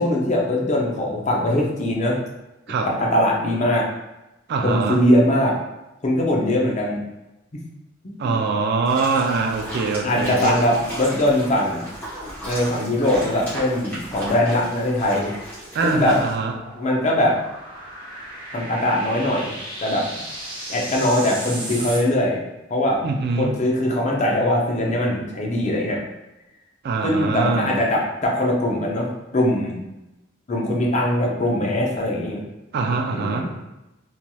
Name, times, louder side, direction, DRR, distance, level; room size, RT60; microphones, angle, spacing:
voice 1, 0.0-2.2 2.8-3.9 4.6-5.6 6.0-7.0 8.2-8.3 10.0-11.8 12.4-15.3 15.8-16.2 16.8-17.4 18.5-19.5 19.8-20.3 20.7-22.4 22.7-23.0 23.4-26.0 27.0-29.8 30.5-32.4 33.1-33.5, left 1 dB, 35° left, -1 dB, 0.5 m, -21 dB
voice 2, 4.5-5.0 8.2-10.6 15.7-16.5 23.0-23.6 26.8-27.9 32.7-33.5, right 4 dB, 55° right, 3 dB, 0.3 m, -23 dB
sound 1, 8.8-16.3, right 1 dB, 10° left, 1.1 m, -35 dB
sound 2, 15.1-22.0, right 1 dB, 25° right, 0.8 m, -36 dB
3.0 x 2.7 x 2.2 m, 0.97 s
head